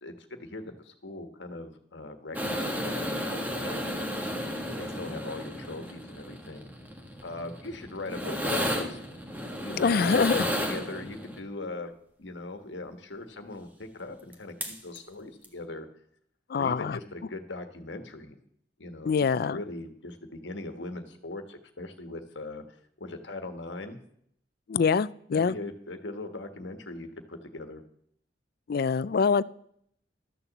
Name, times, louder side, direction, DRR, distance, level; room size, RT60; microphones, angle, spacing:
voice 1, 0.0-4.1 4.7-6.7 7.2-9.0 9.6-10.3 10.6-11.9 12.2-15.9 16.6-18.4 18.8-19.1 19.4-24.0 25.3-27.8, left 2 dB, 85° left, 7 dB, 1.4 m, -40 dB
sound 1, 2.3-11.4 14.3-14.4 14.6-15.0 15.4-15.5, equal, 10° right, 1.5 m, -33 dB
voice 2, 9.7-10.5 16.5-17.0 19.1-19.6 24.7-25.6 28.7-29.4, left 5 dB, 55° left, 18 dB, 0.4 m, -24 dB
13.0 x 6.9 x 7.2 m, 0.68 s
head